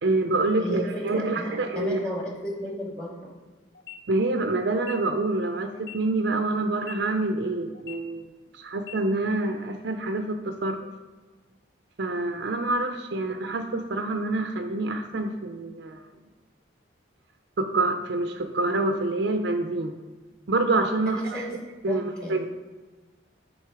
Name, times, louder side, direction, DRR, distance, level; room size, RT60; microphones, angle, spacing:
voice 1, 0.0-2.0 4.1-10.9 12.0-16.0 17.6-20.0 20.5-21.6 21.8-22.5, right 2 dB, 65° right, 6 dB, 0.5 m, -27 dB
voice 2, 0.6-3.3 21.1-21.6 21.9-22.4, equal, 5° left, -2 dB, 1.0 m, -34 dB
sound 1, 3.7-4.0 4.7-4.9 5.7-6.0 6.7-6.9 7.7-8.0 8.7-8.9, left 12 dB, 60° left, 0.6 m, -42 dB
8.6 x 4.0 x 4.8 m, 1.3 s
head